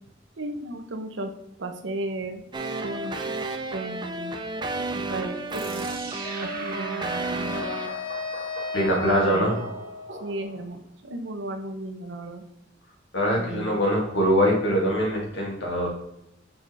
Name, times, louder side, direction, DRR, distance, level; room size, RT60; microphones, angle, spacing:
voice 1, 0.4-1.3 1.6-2.4 2.8-4.3 4.9-5.8 6.4-7.6 8.7-9.7 10.2-12.4 13.3-13.8, right 2 dB, 70° right, 7 dB, 0.8 m, -34 dB
sound 1, 2.5-7.9, right 2 dB, 25° right, 0.6 m, -32 dB
sound 2, 5.5-10.8, right 2 dB, 50° right, 1.5 m, -40 dB
Wind instrument woodwind instrument, 6.2-10.4, left 2 dB, 25° left, 0.9 m, -36 dB
voice 2, 8.7-9.5 13.1-15.9, equal, 65° left, -2 dB, 2.4 m, -23 dB
6.6 x 5.7 x 3.4 m, 0.83 s
head